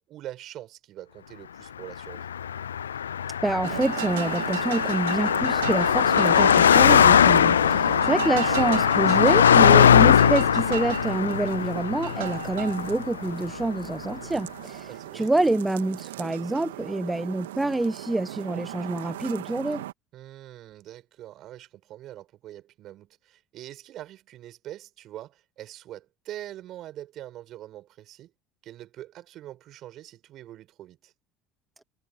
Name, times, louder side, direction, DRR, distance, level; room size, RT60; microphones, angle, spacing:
voice 1, 0.0-2.3 7.6-8.1 14.9-15.3 20.1-28.3 28.6-31.1, right 13 dB, 50° right, 7.0 m, -43 dB
Car passing by, 2.1-13.6, left 8 dB, 85° left, 0.3 m, -20 dB
voice 2, 3.4-14.9 15.1-19.8, right 2 dB, 10° right, 1.2 m, -27 dB
sound 1, 3.6-19.9, right 14 dB, 75° right, 1.9 m, -35 dB
hypercardioid pair, 70°, 0 cm